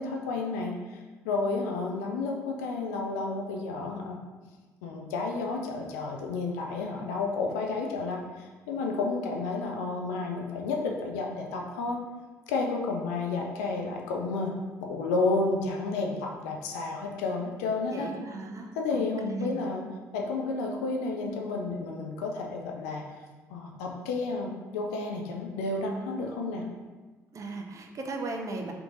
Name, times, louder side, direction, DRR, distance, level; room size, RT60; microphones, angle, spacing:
voice 1, 0.0-4.2 4.8-12.0 12.5-14.5 14.8-18.1 18.7-19.8 20.1-23.0 23.5-26.6, left 3 dB, 75° left, 1 dB, 0.4 m, -31 dB
voice 2, 17.9-19.6 27.3-28.7, right 3 dB, 40° right, 3 dB, 0.4 m, -37 dB
3.4 x 2.9 x 2.5 m, 1.3 s
hypercardioid pair, 50°, 8 cm